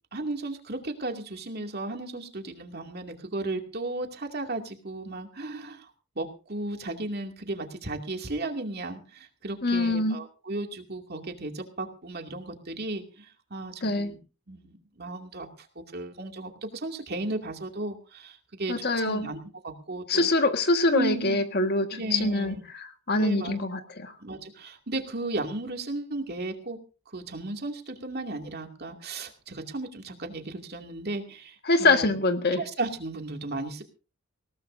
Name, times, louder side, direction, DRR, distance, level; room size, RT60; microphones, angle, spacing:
voice 1, 0.1-5.9 6.2-14.2 14.5-19.4 19.6-20.3 20.9-21.4 21.9-22.6 23.2-23.8 24.2-26.8 27.1-32.1 32.6-33.8, right 2 dB, 45° right, 4 dB, 2.4 m, -35 dB
voice 2, 9.6-10.2 13.8-14.1 18.7-19.3 20.1-24.1 31.7-32.6, left 2 dB, 50° left, 7 dB, 1.6 m, -24 dB
20.0 x 18.0 x 2.7 m, 0.36 s
head